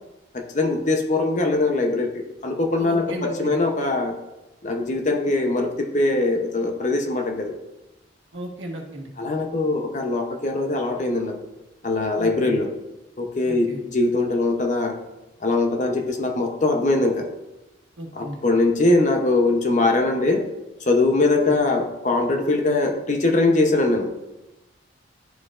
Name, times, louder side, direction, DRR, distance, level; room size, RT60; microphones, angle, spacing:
voice 1, 0.3-4.2 4.6-7.6 9.2-11.4 11.8-12.7 13.2-15.0 15.4-17.3 18.1-20.5 20.8-24.1, left 2 dB, 35° left, 3 dB, 0.7 m, -22 dB
voice 2, 2.8-3.5 8.3-9.1 12.2-12.5 13.4-13.8 18.0-18.4 21.2-21.3, right 1 dB, 75° right, 0 dB, 1.3 m, -35 dB
11.5 x 4.5 x 2.5 m, 1.0 s
head